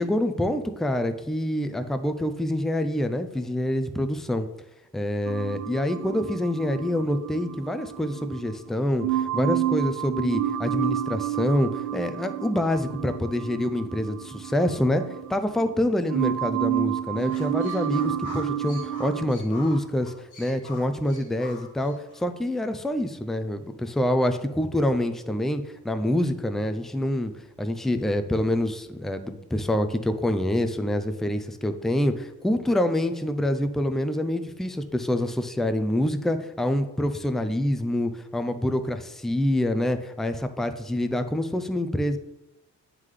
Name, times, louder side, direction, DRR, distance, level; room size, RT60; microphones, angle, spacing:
voice 1, 0.0-4.5 4.9-42.2, left 1 dB, ahead, 8 dB, 0.4 m, -26 dB
sound 1, 5.3-8.5 9.0-15.8 16.1-19.3, right 12 dB, 75° right, 0.6 m, -30 dB
sound 2, 17.2-22.2, left 2 dB, 75° left, 1.5 m, -44 dB
9.2 x 3.8 x 3.2 m, 0.88 s
cardioid pair, 100°, 31 cm